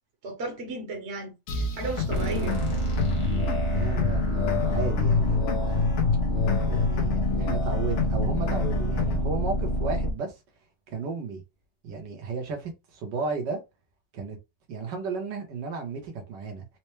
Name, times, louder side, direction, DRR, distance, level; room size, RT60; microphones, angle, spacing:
voice 1, 0.2-2.6, right 2 dB, 45° right, 1.0 m, -35 dB
sound 1, 1.5-5.2, right 1 dB, 75° left, 1.4 m, -38 dB
sound 2, 1.8-9.2, left 6 dB, 60° left, 0.8 m, -28 dB
sound 3, 2.1-10.1, equal, 25° left, 0.6 m, -27 dB
voice 2, 3.6-5.9 6.6-10.3 10.9-11.4 11.8-13.6 14.1-14.4 14.7-16.7, right 4 dB, 75° right, 1.6 m, -33 dB
4.4 x 2.1 x 3.0 m
omnidirectional pair, 1.9 m